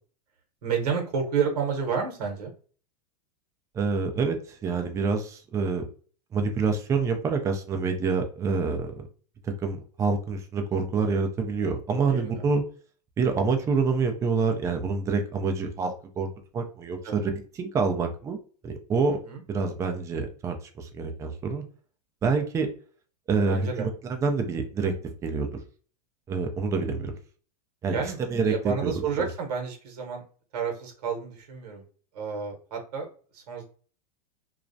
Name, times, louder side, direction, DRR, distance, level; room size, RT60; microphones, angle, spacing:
voice 1, 0.6-2.5 12.1-12.5 17.0-17.3 19.3-19.4 23.5-23.9 27.9-30.2 30.5-31.8 32.1-33.1 33.3-33.6, right 6 dB, 75° right, 2 dB, 0.9 m, -30 dB
voice 2, 3.7-5.8 6.3-9.1 9.4-12.6 13.2-17.3 17.6-18.4 18.6-19.2 19.5-21.6 22.2-22.7 23.3-24.9 25.2-25.5 26.3-27.1 27.8-28.0 28.3-29.3, right 4 dB, 15° right, 5 dB, 0.3 m, -27 dB
2.3 x 2.0 x 2.5 m, 0.41 s
supercardioid pair, 135°, 21 cm